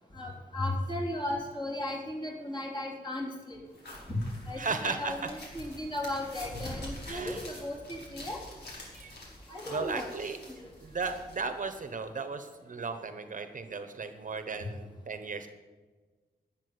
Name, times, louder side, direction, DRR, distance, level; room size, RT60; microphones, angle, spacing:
voice 1, 0.1-3.6 4.1-4.2 4.5-8.4 9.5-10.1 10.6-10.7, left 1 dB, 25° left, -2 dB, 3.7 m, -36 dB
sound 1, 3.7-11.9, left 1 dB, 85° left, 5.0 m, -46 dB
voice 2, 4.6-5.1 7.1-7.4 8.9-9.1 9.7-10.4 10.8-15.5, right 4 dB, 50° right, 8 dB, 1.0 m, -36 dB
13.0 x 7.3 x 9.7 m, 1.4 s
wide cardioid pair, 130°, 17 cm